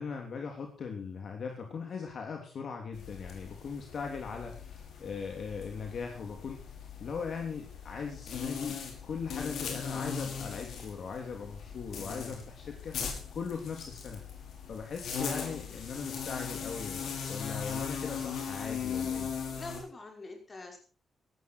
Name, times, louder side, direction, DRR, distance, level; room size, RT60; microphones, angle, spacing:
voice 1, 0.0-6.7 7.0-14.2 14.7-19.3, left 5 dB, 55° left, 2 dB, 3.1 m, -39 dB
sound 1, 2.9-19.8, left 6 dB, 75° left, 5.5 m, -39 dB
voice 2, 19.5-20.8, left 3 dB, 30° left, 3 dB, 5.5 m, -45 dB
18.0 x 13.5 x 4.6 m, 0.37 s
cardioid pair, 120°, 0 cm